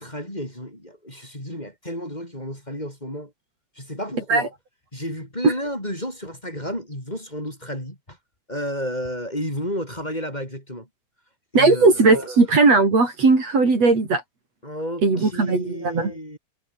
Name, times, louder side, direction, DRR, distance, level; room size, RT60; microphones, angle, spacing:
voice 1, 0.0-3.3 3.8-4.5 4.9-8.2 8.5-10.9 11.5-12.3 14.6-16.4, equal, 15° left, 8.0 m, -32 dB
voice 2, 11.5-14.2 15.0-16.1, right 3 dB, 60° right, 6.6 m, -17 dB
omnidirectional pair, 3.3 m